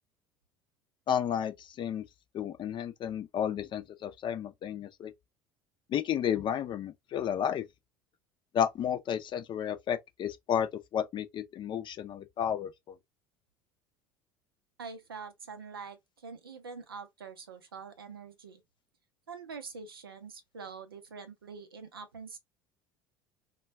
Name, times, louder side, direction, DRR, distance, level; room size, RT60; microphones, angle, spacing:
voice 1, 1.1-2.0 2.3-5.1 5.9-7.6 8.5-12.9, left 9 dB, 40° left, 0.5 m, -32 dB
voice 2, 14.8-18.6 19.3-22.4, right 5 dB, 90° right, 0.6 m, -45 dB
2.2 x 2.2 x 3.2 m
hypercardioid pair, 70°, 12 cm